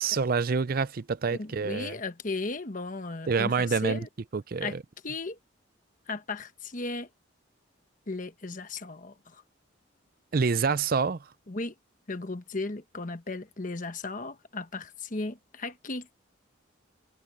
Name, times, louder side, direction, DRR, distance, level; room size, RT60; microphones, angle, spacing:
voice 1, 0.0-1.9 3.3-4.1 4.3-4.8 10.3-11.2, right 5 dB, 50° right, 0.5 m, -27 dB
voice 2, 1.3-4.1 4.6-4.8 5.0-5.4 6.1-7.1 8.1-9.4 11.5-11.7 12.1-16.1, left 3 dB, 40° left, 1.2 m, -36 dB
head